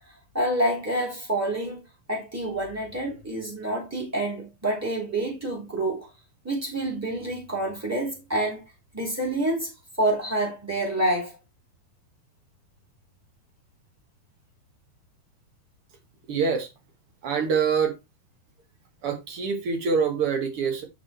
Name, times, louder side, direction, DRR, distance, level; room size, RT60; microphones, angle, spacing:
voice 1, 0.3-1.8 2.1-6.1 6.4-8.6 8.9-9.7 10.0-11.4, right 1 dB, 5° right, 3.1 m, -27 dB
voice 2, 16.3-16.7 17.2-17.9 19.0-20.8, right 6 dB, 70° right, 1.4 m, -25 dB
8.8 x 6.6 x 3.3 m
omnidirectional pair, 4.8 m